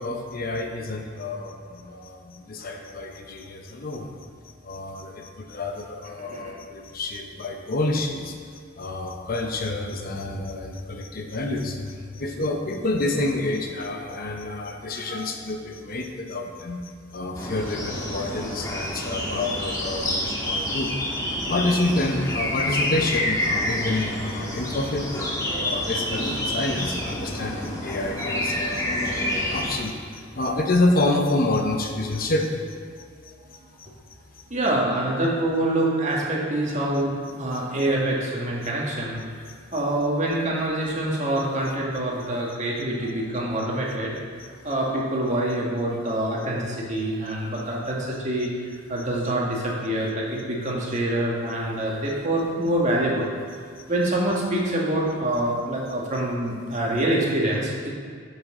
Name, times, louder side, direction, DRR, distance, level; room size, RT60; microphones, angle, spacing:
voice 1, 0.0-4.1 4.6-8.3 8.8-21.2 21.5-25.3 25.6-32.5 37.8-37.9 39.7-39.8 43.0-43.1 49.2-49.3, left 2 dB, 50° left, 3 dB, 0.8 m, -28 dB
voice 2, 6.2-6.6 18.3-18.6 18.9-19.4 34.5-39.5 39.7-44.1 44.6-48.5 48.9-53.3 53.9-57.9, right 1 dB, 40° right, -3 dB, 1.7 m, -26 dB
sound 1, 17.3-29.8, left 1 dB, 20° left, 1.4 m, -28 dB
10.5 x 6.7 x 3.7 m, 2.1 s
head